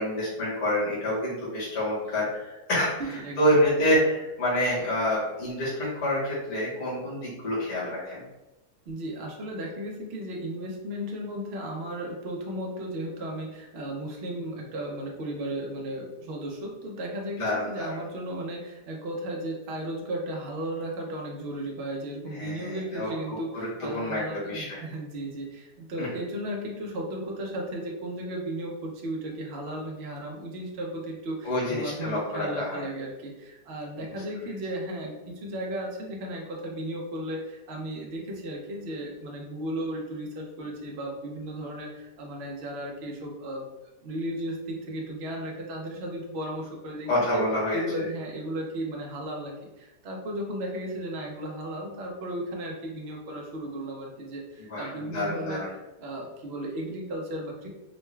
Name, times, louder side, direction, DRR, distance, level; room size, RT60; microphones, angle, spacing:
voice 1, 0.0-2.9 3.4-8.2 17.4-17.9 22.3-24.8 26.0-26.1 31.4-32.8 34.0-34.2 47.1-48.0 54.7-55.7, equal, 45° left, -8 dB, 1.4 m, -27 dB
voice 2, 8.9-43.6 44.0-47.5 47.7-55.6 56.0-57.7, right 1 dB, 55° right, 0 dB, 0.7 m, -35 dB
3.8 x 2.2 x 3.2 m, 1.0 s
omnidirectional pair, 1.8 m